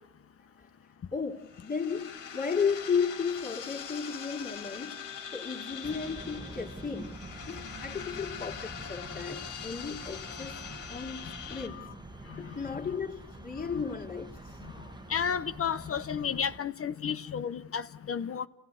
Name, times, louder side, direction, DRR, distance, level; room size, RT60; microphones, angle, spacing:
voice 1, 1.1-5.0 5.3-7.2 7.5-10.5 10.9-11.9 12.4-14.6, left 6 dB, 30° left, 2.7 m, -34 dB
sound 1, 1.4-11.7, left 7 dB, 85° left, 3.6 m, -42 dB
sound 2, 5.8-16.6, right 2 dB, 15° right, 1.3 m, -46 dB
voice 2, 15.1-17.8 18.1-18.5, left 7 dB, 50° left, 1.0 m, -31 dB
28.5 x 16.5 x 9.6 m
cardioid pair, 90°, 30 cm